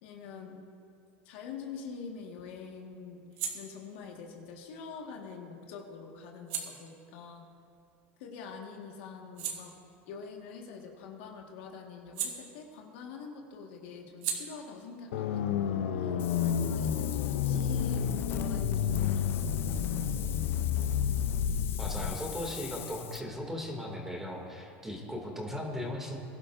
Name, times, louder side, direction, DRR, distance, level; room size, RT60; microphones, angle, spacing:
voice 1, 0.0-0.6 1.3-7.5 8.2-9.7 10.1-19.9, left 5 dB, 75° left, 1 dB, 1.7 m, -45 dB
sound 1, 1.6-8.5 8.9-13.1 13.4-16.8, right 8 dB, 60° right, 1.9 m, -44 dB
sound 2, 15.1-22.1, left 8 dB, 90° left, 0.6 m, -30 dB
Wind, 16.2-23.2, left 10 dB, 40° left, 0.5 m, -41 dB
voice 2, 21.8-26.2, left 1 dB, 5° right, 0 dB, 2.4 m, -37 dB
22.0 x 11.5 x 2.6 m, 2.7 s
supercardioid pair, 120°, 6 cm